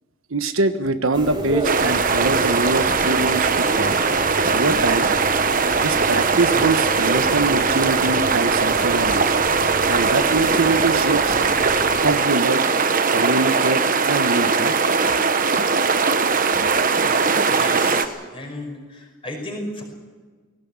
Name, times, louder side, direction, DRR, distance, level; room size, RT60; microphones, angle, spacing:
voice 1, 0.3-4.0 4.5-5.1 5.7-9.4 9.9-11.4 12.0-12.6 13.1-14.7, right 3 dB, 75° right, 9 dB, 1.3 m, -23 dB
sound 1, 1.1-12.2, right 1 dB, 20° right, 4.4 m, -31 dB
sound 2, 1.6-18.1, right 4 dB, 40° right, 1.1 m, -20 dB
voice 2, 17.5-18.7 19.2-19.8, left 1 dB, 25° left, 2 dB, 5.3 m, -32 dB
20.0 x 17.5 x 8.6 m, 1.4 s
head